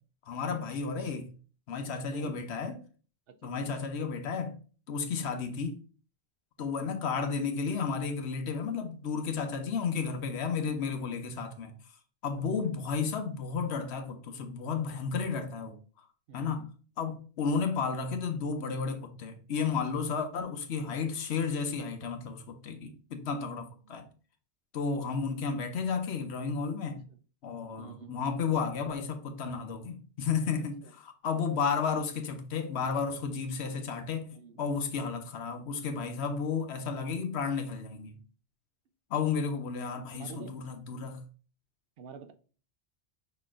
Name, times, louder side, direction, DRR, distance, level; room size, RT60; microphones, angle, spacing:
voice 1, 0.2-1.3 1.7-2.8 3.4-4.6 4.9-5.8 6.6-11.8 12.2-15.8 16.3-16.6 17.0-24.1 24.7-27.0 27.4-34.3 34.6-38.2 39.1-41.2, left 5 dB, 85° left, 1.0 m, -32 dB
voice 2, 3.3-3.8 5.1-5.3 6.6-6.9 10.5-10.7 12.6-12.7 16.3-16.7 23.5-24.0 27.8-28.2 30.6-30.9 34.3-34.6 40.1-40.6 42.0-42.3, right 6 dB, 65° right, 0.7 m, -49 dB
5.5 x 3.9 x 2.4 m
omnidirectional pair, 1.1 m